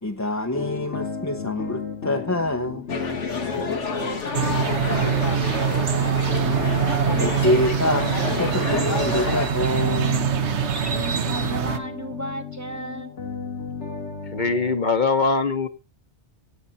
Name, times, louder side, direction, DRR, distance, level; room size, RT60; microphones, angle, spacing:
voice 1, 0.0-2.8 7.2-8.1 8.3-10.3, left 1 dB, 15° left, 0.7 m, -25 dB
sound 1, 0.5-14.8, left 5 dB, 70° left, 2.1 m, -34 dB
sound 2, 2.9-9.5, left 4 dB, 85° left, 2.0 m, -29 dB
voice 2, 3.7-6.4 10.7-13.2, equal, 15° right, 1.0 m, -35 dB
sound 3, 4.3-11.8, right 8 dB, 75° right, 1.3 m, -24 dB
voice 3, 14.3-15.7, left 4 dB, 45° left, 1.2 m, -22 dB
16.5 x 7.5 x 4.1 m
omnidirectional pair, 1.2 m